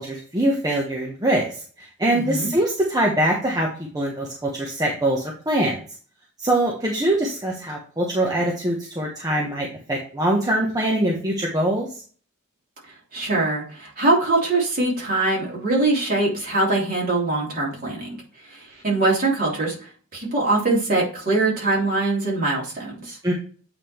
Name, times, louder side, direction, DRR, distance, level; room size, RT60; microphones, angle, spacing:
voice 1, 0.0-3.7 3.9-5.8 6.4-11.9 23.2-23.3, right 1 dB, 15° right, -2 dB, 1.1 m, -23 dB
voice 2, 2.1-2.5 13.1-18.2 18.4-23.2, right 2 dB, 40° right, -4 dB, 3.1 m, -23 dB
8.4 x 3.6 x 4.4 m, 0.42 s
head